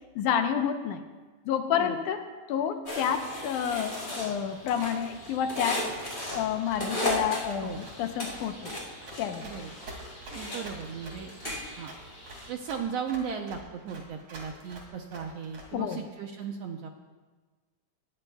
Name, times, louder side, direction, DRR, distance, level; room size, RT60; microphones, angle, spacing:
voice 1, 0.2-1.0 1.5-5.8 6.3-8.7 9.2-9.5 15.7-16.0, left 8 dB, 80° left, 7 dB, 2.2 m, -29 dB
sound 1, 2.9-12.5, left 1 dB, 15° left, 4.2 m, -36 dB
Run, 5.9-16.0, right 2 dB, 55° right, 3.4 m, -46 dB
voice 2, 10.3-11.3 11.8-11.9 12.5-16.9, right 7 dB, 75° right, 3 dB, 1.6 m, -36 dB
20.0 x 15.0 x 2.3 m, 1.3 s
omnidirectional pair, 3.6 m